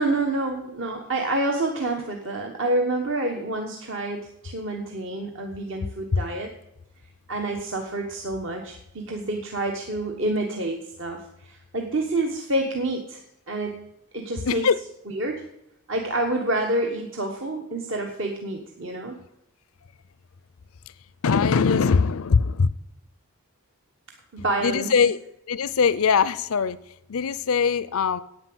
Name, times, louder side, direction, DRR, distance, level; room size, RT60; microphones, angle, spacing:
voice 1, 0.0-6.5 7.3-13.2 13.5-13.8 14.1-14.7 15.1-15.3 15.9-19.2 24.3-24.9, right 2 dB, 55° right, 2 dB, 1.2 m, -28 dB
voice 2, 14.5-14.8 21.2-22.7 24.6-25.2 25.5-28.2, left 5 dB, 75° left, 16 dB, 0.5 m, -21 dB
9.8 x 8.7 x 7.8 m, 0.83 s
head